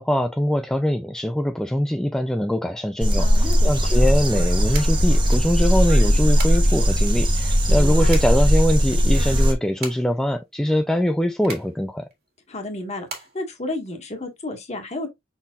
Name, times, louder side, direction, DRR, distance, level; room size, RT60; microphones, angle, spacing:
voice 1, 0.0-12.1, equal, 5° left, 0.3 m, -23 dB
sound 1, 3.0-9.5, equal, 25° right, 0.9 m, -18 dB
voice 2, 3.2-3.7 7.7-8.1 12.5-13.1 13.3-15.1, left 2 dB, 35° left, 1.4 m, -32 dB
sound 2, 4.7-14.4, right 4 dB, 55° right, 1.8 m, -41 dB
5.5 x 4.1 x 2.3 m
head